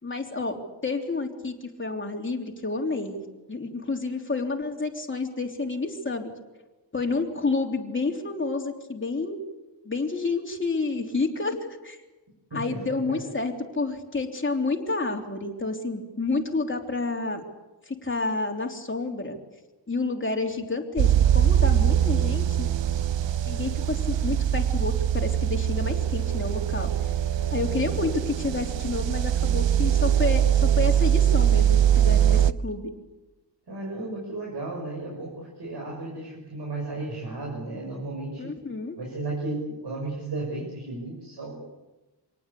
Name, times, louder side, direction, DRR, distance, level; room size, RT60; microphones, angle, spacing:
voice 1, 0.0-3.2 3.5-6.3 6.9-9.4 9.8-12.0 12.5-17.4 17.8-19.4 19.9-22.7 23.5-27.1 27.5-32.9 38.4-39.0, left 3 dB, 25° left, 2 dB, 3.4 m, -29 dB
voice 2, 12.5-13.2 33.7-38.5 39.0-41.7, right 2 dB, 65° right, -2 dB, 6.4 m, -34 dB
sound 1, 21.0-32.5, right 10 dB, 85° right, 0.8 m, -22 dB
26.5 x 19.5 x 8.4 m, 1.1 s
wide cardioid pair, 145°, 43 cm